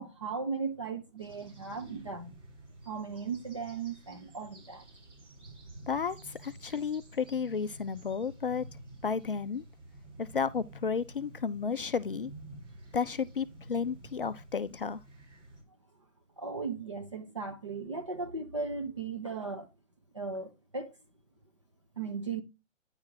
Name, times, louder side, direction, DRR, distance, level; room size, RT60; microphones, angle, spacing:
voice 1, 0.0-2.4 2.9-4.8 16.4-19.7 20.1-20.9 22.0-22.4, right 4 dB, 25° right, 0.5 m, -37 dB
sound 1, 1.2-15.6, right 1 dB, 60° right, 4.2 m, -51 dB
voice 2, 5.9-8.6 9.0-9.6 10.2-12.3 12.9-15.0, left 6 dB, 45° left, 0.4 m, -32 dB
9.7 x 3.6 x 4.5 m
hypercardioid pair, 155°, 39 cm